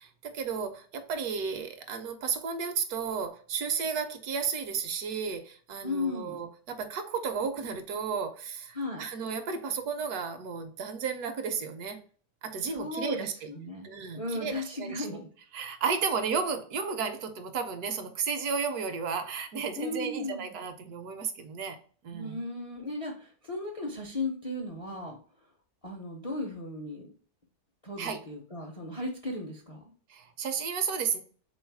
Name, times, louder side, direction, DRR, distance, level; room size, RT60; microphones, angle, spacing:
voice 1, 0.0-12.0 12.4-13.5 13.8-15.2 15.5-21.8 22.0-22.4 28.0-28.2 30.1-31.2, right 6 dB, 70° right, 7 dB, 1.1 m, -33 dB
voice 2, 5.8-6.4 8.7-9.1 12.7-13.9 14.1-15.3 19.8-20.5 22.1-25.2 25.8-27.1 27.8-29.8, left 2 dB, 45° left, 0 dB, 0.4 m, -36 dB
3.7 x 3.1 x 4.6 m, 0.43 s
omnidirectional pair, 1.8 m